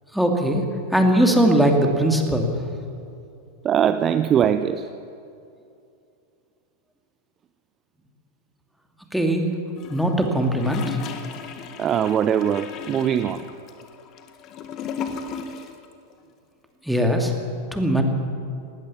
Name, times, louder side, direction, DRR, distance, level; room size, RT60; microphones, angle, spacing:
voice 1, 0.1-0.6 0.9-2.5 9.1-9.5 9.9-11.0 16.9-17.3 17.7-18.0, right 1 dB, ahead, 3 dB, 2.7 m, -20 dB
voice 2, 3.6-4.9 11.8-13.5, right 9 dB, 30° right, 12 dB, 0.6 m, -21 dB
Gurgling / Toilet flush, 9.8-15.9 16.1-16.2, left 6 dB, 35° left, 1.8 m, -36 dB
19.5 x 19.0 x 7.2 m, 2.6 s
figure-of-eight pair, 90°, 0 cm